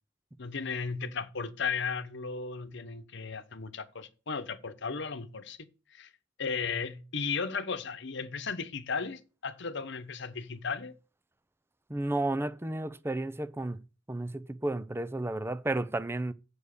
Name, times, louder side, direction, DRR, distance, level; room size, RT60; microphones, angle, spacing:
voice 1, 0.4-5.6 5.9-6.1 6.4-10.9, left 5 dB, 65° left, 1.1 m, -35 dB
voice 2, 11.9-13.8 14.1-16.3, right 2 dB, 10° right, 0.5 m, -32 dB
7.4 x 6.6 x 6.6 m
head